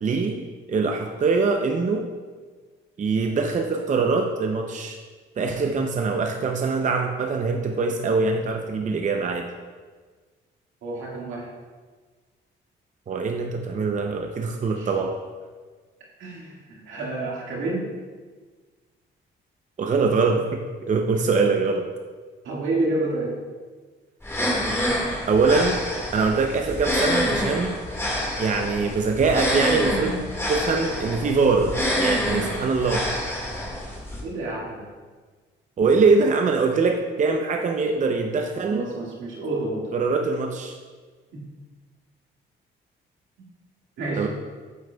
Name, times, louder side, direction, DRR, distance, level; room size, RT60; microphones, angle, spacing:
voice 1, 0.0-2.1 3.0-5.0 5.4-9.5 13.1-15.1 19.8-20.6 20.9-21.9 25.3-25.8 26.1-27.8 28.4-30.1 30.5-33.0 35.8-38.8 39.9-40.8 44.2-44.3, right 4 dB, 40° right, 3 dB, 0.6 m, -23 dB
voice 2, 10.8-11.5 14.7-14.9 16.2-17.9 22.4-23.3 34.2-34.9 38.7-39.9 41.3-41.4 43.4-43.5 44.0-44.3, right 2 dB, 80° right, -3 dB, 1.9 m, -29 dB
sound 1, 24.2-34.2, equal, 15° left, 1.8 m, -27 dB
7.8 x 7.7 x 2.3 m, 1.4 s
cardioid pair, 90°, 20 cm